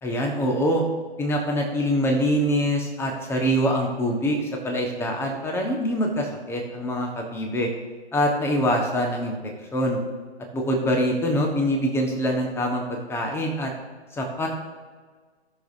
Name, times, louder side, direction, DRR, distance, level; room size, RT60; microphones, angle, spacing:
voice 1, 0.0-0.8 1.2-7.7 8.1-10.0 10.5-13.7 14.1-14.5, equal, 5° left, 1 dB, 1.3 m, -24 dB
18.5 x 6.5 x 2.7 m, 1.5 s
hypercardioid pair, 140°, 33 cm